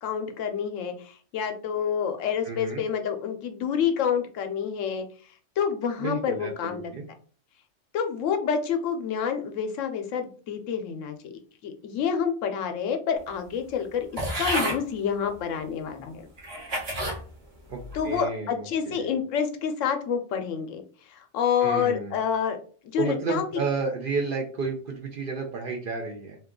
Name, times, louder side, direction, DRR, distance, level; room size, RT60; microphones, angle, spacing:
voice 1, 0.0-5.1 5.6-6.9 7.9-11.3 11.6-16.3 17.9-20.8 21.1-22.6 22.8-23.4, left 7 dB, 80° left, 6 dB, 0.9 m, -28 dB
voice 2, 2.4-2.8 6.0-7.1 17.7-19.1 21.6-22.2 23.0-26.4, right 4 dB, 60° right, 1 dB, 0.6 m, -31 dB
sound 1, 14.2-14.8 15.6-15.7 16.4-17.2 17.8-18.2, right 1 dB, 40° right, 1.1 m, -30 dB
2.8 x 2.3 x 3.6 m, 0.42 s
omnidirectional pair, 1.3 m